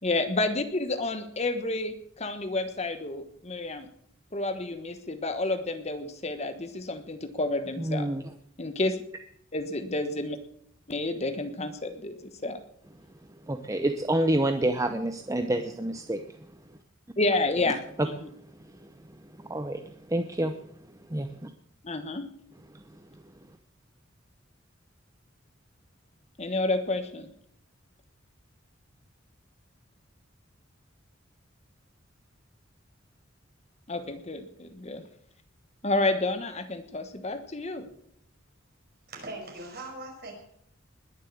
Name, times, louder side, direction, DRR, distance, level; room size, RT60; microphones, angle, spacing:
voice 1, 0.0-3.9 4.3-8.1 8.6-9.0 9.5-10.4 10.9-12.6 17.2-18.3 21.8-22.3 26.4-27.3 33.9-35.0 35.8-37.9, left 2 dB, 35° left, 9 dB, 1.3 m, -30 dB
voice 2, 7.8-8.2 13.5-16.2 19.5-19.8 20.1-20.5 21.1-21.5, right 1 dB, 15° right, 7 dB, 0.8 m, -27 dB
voice 3, 39.1-40.3, right 2 dB, 50° right, 1 dB, 5.5 m, -40 dB
20.5 x 7.5 x 8.5 m, 0.69 s
head